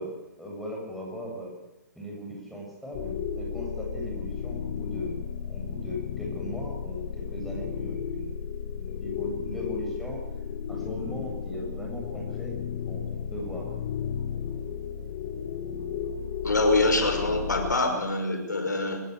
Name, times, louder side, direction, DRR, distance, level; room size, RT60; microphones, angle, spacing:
voice 1, 0.0-1.5 2.0-5.2 5.5-8.4 8.8-10.2 10.7-12.5 12.9-13.7, equal, ahead, -3 dB, 7.5 m, -38 dB
sound 1, 2.9-17.7, left 7 dB, 35° left, 2.1 m, -34 dB
voice 2, 16.4-19.0, left 2 dB, 75° left, 5 dB, 5.6 m, -25 dB
22.5 x 20.0 x 8.3 m, 1.0 s
figure-of-eight pair, 130°, 10 cm